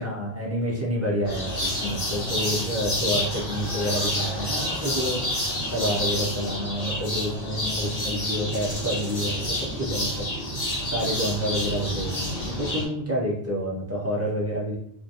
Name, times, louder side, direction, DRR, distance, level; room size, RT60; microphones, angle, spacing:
voice 1, 0.0-10.3 10.5-14.8, equal, 20° right, -5 dB, 0.4 m, -29 dB
sound 1, 1.2-12.8, left 1 dB, 40° left, 0.8 m, -29 dB
2.3 x 2.1 x 2.7 m, 0.69 s
omnidirectional pair, 1.1 m